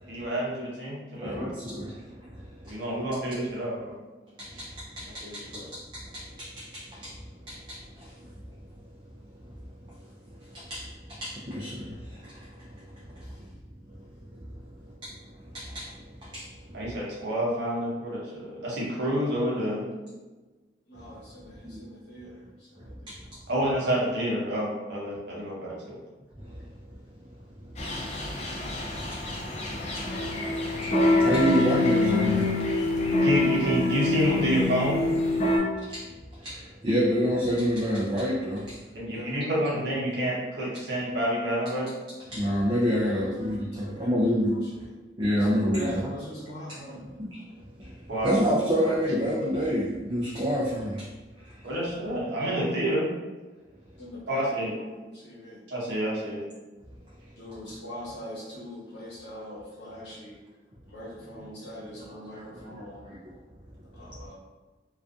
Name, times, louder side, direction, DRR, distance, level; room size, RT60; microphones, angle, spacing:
voice 1, 0.1-1.5 2.7-3.9 4.5-4.6 5.2-5.7 16.7-19.9 23.5-26.0 33.2-35.1 38.9-41.9 48.1-48.5 48.8-48.9 51.6-53.1 54.3-54.7 55.7-56.4, right 1 dB, 70° right, -5 dB, 0.8 m, -28 dB
voice 2, 1.2-2.8 4.4-7.2 7.5-8.3 9.8-9.9 10.3-13.5 15.1-16.8 21.6-21.8 22.8-23.1 26.4-26.7 27.6-28.2 29.1-29.3 29.9-30.4 30.7-32.5 35.8-38.8 42.3-44.6 45.2-46.1 47.2-47.3 47.8-51.1 51.4-51.7 62.7-63.3, equal, 25° right, -6 dB, 0.4 m, -29 dB
voice 3, 20.9-23.2 39.1-40.1 43.0-43.3 43.7-44.7 45.4-45.5 45.8-47.1 54.0-54.9 55.1-55.6 57.4-60.4 60.9-63.1 63.9-64.3, left 1 dB, 70° left, -5 dB, 0.9 m, -42 dB
sound 1, 27.8-35.6, left 2 dB, 35° left, 0.4 m, -25 dB
2.5 x 2.4 x 2.4 m, 1.2 s
head